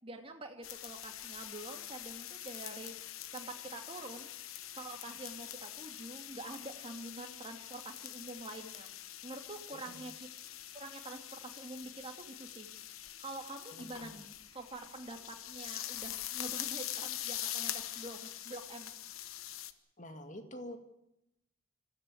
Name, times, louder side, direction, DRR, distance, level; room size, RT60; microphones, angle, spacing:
voice 1, 0.0-3.0 3.3-8.9 9.2-10.3 10.7-12.7 13.2-18.9, right 2 dB, 25° right, 3 dB, 2.5 m, -46 dB
sound 1, 0.6-19.7, left 12 dB, 80° left, 1.1 m, -44 dB
voice 2, 9.7-10.0 13.7-14.2 20.0-20.8, equal, 35° left, 7 dB, 2.1 m, -47 dB
25.0 x 15.0 x 8.6 m, 0.86 s
head